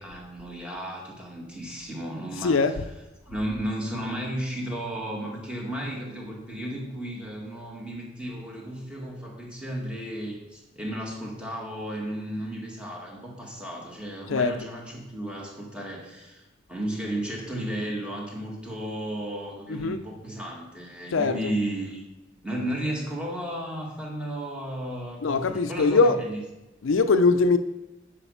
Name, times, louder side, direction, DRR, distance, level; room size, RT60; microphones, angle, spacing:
voice 1, 0.0-2.7 3.3-22.0 22.4-26.4, right 1 dB, 5° right, 2.0 m, -34 dB
voice 2, 2.4-2.8 14.3-14.6 19.7-20.0 21.1-21.4 25.2-26.2 26.8-27.6, left 4 dB, 75° left, 0.5 m, -21 dB
9.9 x 5.1 x 5.7 m
head